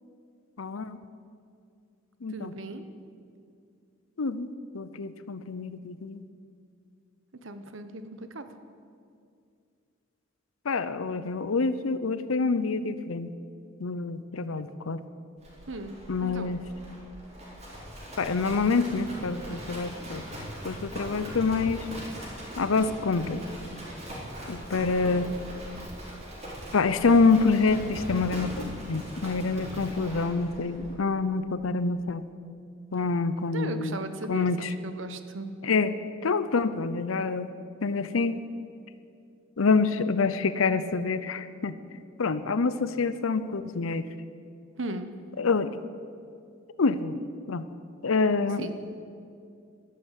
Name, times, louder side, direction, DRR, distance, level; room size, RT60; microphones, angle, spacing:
voice 1, 0.6-1.0 2.2-2.5 4.2-6.2 10.6-13.3 13.8-15.0 16.1-16.6 18.2-20.2 20.6-21.9 22.6-23.5 24.5-25.3 26.7-32.2 32.9-34.0 34.3-34.7 35.6-37.5 37.8-38.4 39.6-41.7 42.2-44.1 45.4-45.7 46.8-47.2 47.5-47.7 48.0-48.7, left 4 dB, 90° left, 13 dB, 0.6 m, -26 dB
voice 2, 2.3-2.9 7.4-8.5 15.7-16.6 33.5-35.5 44.8-45.1 48.6-48.7, right 2 dB, 70° right, 9 dB, 1.1 m, -37 dB
Livestock farm animals working animals, 15.4-30.9, equal, 35° right, 4.1 m, -40 dB
13.5 x 12.5 x 8.2 m, 2.4 s
head